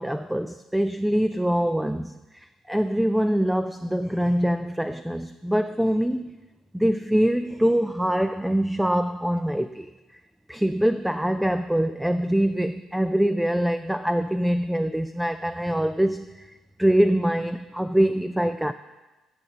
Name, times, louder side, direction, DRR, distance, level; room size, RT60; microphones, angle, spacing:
voice 1, 0.0-6.4 6.7-10.2 10.5-16.5 16.8-18.7, equal, 5° right, 10 dB, 0.3 m, -24 dB
11.5 x 5.9 x 5.3 m, 1.1 s
cardioid pair, 80°, 0 cm